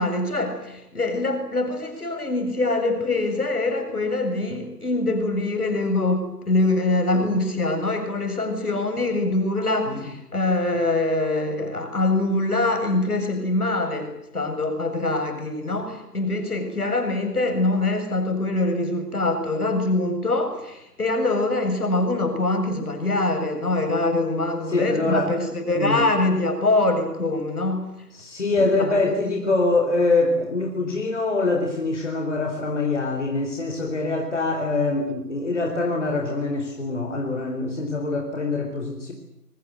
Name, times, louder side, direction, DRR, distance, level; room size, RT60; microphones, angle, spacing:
voice 1, 0.0-27.9 28.6-29.0, left 2 dB, 65° left, 7 dB, 7.4 m, -24 dB
voice 2, 24.7-25.4 25.7-26.1 28.1-39.1, left 3 dB, 45° left, 3 dB, 4.5 m, -24 dB
25.0 x 23.5 x 8.2 m, 0.84 s
figure-of-eight pair, 165°, 49 cm